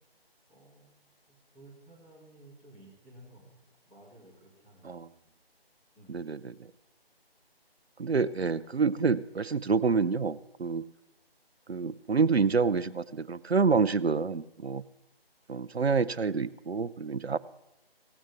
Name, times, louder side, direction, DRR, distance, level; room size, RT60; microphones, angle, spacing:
voice 1, 0.5-5.0 5.9-6.2, right 1 dB, 5° left, -13 dB, 2.3 m, -55 dB
voice 2, 6.1-6.7 8.0-10.8 11.7-14.8 15.5-17.4, right 5 dB, 90° right, 16 dB, 0.6 m, -27 dB
17.0 x 16.0 x 3.5 m, 0.87 s
figure-of-eight pair, 160°, 31 cm